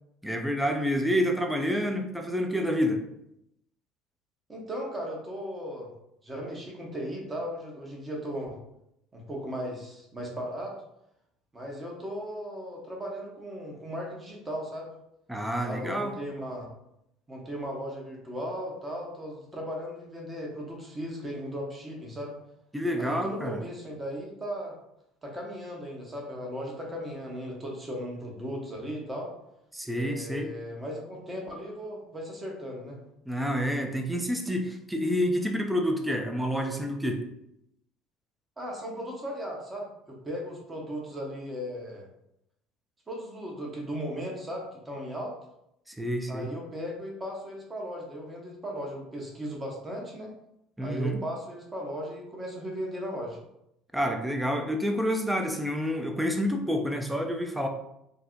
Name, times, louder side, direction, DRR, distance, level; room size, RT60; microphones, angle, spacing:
voice 1, 0.2-3.0 15.3-16.1 22.7-23.6 29.7-30.5 33.3-37.2 45.9-46.5 50.8-51.2 53.9-57.7, equal, 5° right, 4 dB, 0.4 m, -28 dB
voice 2, 4.5-5.9 6.2-8.6 9.1-10.7 11.5-14.9 15.6-16.7 17.3-22.3 23.0-24.7 25.2-29.3 29.9-33.0 38.6-42.1 43.1-45.3 46.3-50.3 50.8-53.4, equal, 20° right, -1 dB, 0.8 m, -37 dB
2.6 x 2.0 x 2.5 m, 0.80 s
figure-of-eight pair, 60°, 0 cm